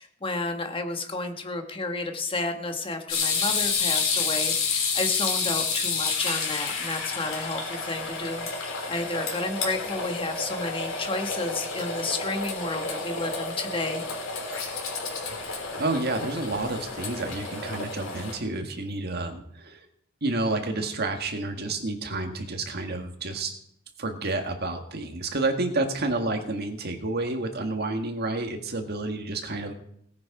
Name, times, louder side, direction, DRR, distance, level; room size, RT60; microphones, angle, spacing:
voice 1, 0.0-14.0, left 2 dB, 25° left, 5 dB, 1.4 m, -32 dB
sound 1, 3.1-18.4, left 4 dB, 90° left, 3.5 m, -30 dB
voice 2, 15.4-19.9 20.2-23.5 24.0-29.7, right 2 dB, 50° right, 5 dB, 1.7 m, -30 dB
18.0 x 9.3 x 4.8 m, 0.73 s
head